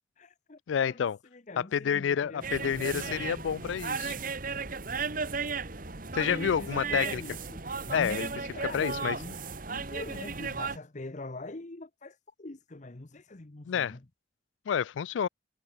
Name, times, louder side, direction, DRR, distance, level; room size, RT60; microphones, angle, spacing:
voice 1, 0.2-0.6 0.8-1.0 1.3-3.3 6.3-9.4 9.7-14.0, left 2 dB, 40° left, 1.0 m, -43 dB
voice 2, 0.7-1.2 1.6-4.2 6.1-7.2 7.9-8.3 8.7-9.2 13.7-14.0 14.7-15.3, left 8 dB, 90° left, 0.4 m, -29 dB
sound 1, 2.4-10.8, right 5 dB, 50° right, 2.0 m, -35 dB
head